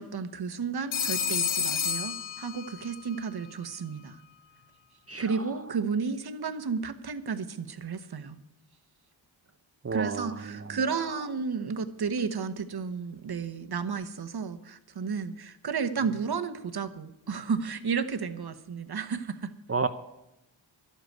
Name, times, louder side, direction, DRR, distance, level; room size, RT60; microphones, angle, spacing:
voice 1, 0.0-4.2 5.2-8.4 9.9-19.5, right 5 dB, 55° right, 10 dB, 1.2 m, -32 dB
Telephone, 0.9-3.0, left 7 dB, 85° left, 1.0 m, -30 dB
voice 2, 9.8-10.8 19.7-19.9, right 4 dB, 30° right, 8 dB, 0.8 m, -31 dB
11.5 x 8.4 x 9.3 m, 0.89 s
cardioid pair, 55°, 46 cm